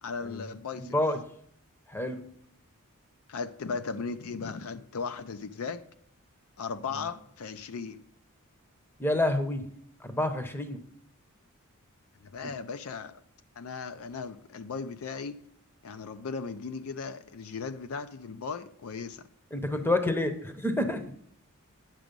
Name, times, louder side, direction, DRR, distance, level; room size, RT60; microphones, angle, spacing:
voice 1, 0.0-1.0 3.3-5.8 6.6-8.1 12.2-13.2 13.6-15.4 15.8-19.3, left 5 dB, 70° left, 0.5 m, -37 dB
voice 2, 0.8-1.2 1.9-2.2 9.0-9.7 10.0-10.8 19.5-21.0, left 1 dB, 10° left, 0.7 m, -28 dB
9.1 x 6.0 x 5.3 m
head